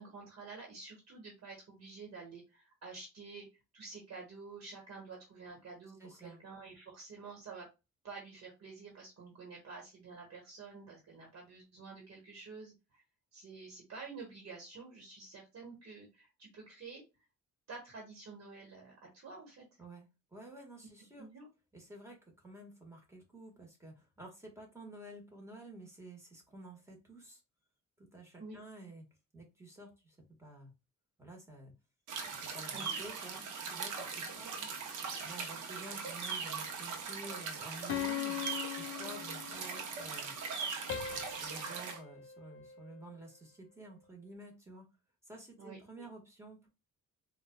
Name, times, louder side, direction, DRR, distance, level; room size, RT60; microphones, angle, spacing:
voice 1, 0.0-3.5 3.7-7.7 8.0-13.0 13.3-17.0 17.7-19.7 21.2-21.5 28.4-28.6 32.7-33.0 34.0-34.1 34.6-34.7 45.6-46.1, right 4 dB, 55° right, -1 dB, 1.4 m, -49 dB
voice 2, 6.0-6.4 19.8-21.3 21.7-27.4 28.0-29.1 29.3-30.7 31.2-31.7 32.4-34.5 35.2-38.4 38.8-40.3 41.1-44.9 45.2-46.7, right 2 dB, 10° right, 1 dB, 1.5 m, -51 dB
sound 1, 32.1-42.0, right 5 dB, 80° right, 0.9 m, -40 dB
sound 2, 37.9-39.8 40.9-43.3, left 10 dB, 50° left, 0.5 m, -41 dB
4.2 x 2.5 x 2.2 m, 0.26 s
cardioid pair, 90°, 30 cm